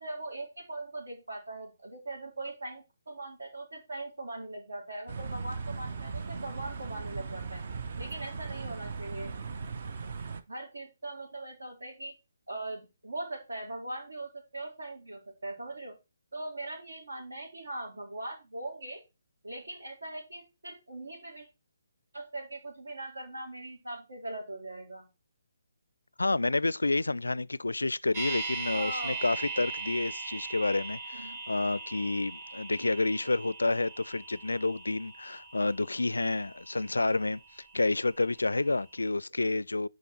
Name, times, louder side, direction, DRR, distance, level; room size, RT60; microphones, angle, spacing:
voice 1, 0.0-7.6 8.0-9.3 10.5-12.1 12.5-16.0 16.3-19.0 19.4-21.5 22.1-25.1 28.7-29.2 31.1-31.4, right 2 dB, 70° right, 4.0 m, -40 dB
sound 1, 5.1-10.4, right 4 dB, 45° right, 0.9 m, -38 dB
voice 2, 26.2-39.9, left 2 dB, 70° left, 0.4 m, -29 dB
sound 2, 28.1-38.2 38.5-38.6, right 4 dB, 30° right, 1.9 m, -40 dB
10.5 x 5.1 x 4.4 m
figure-of-eight pair, 140°, 0 cm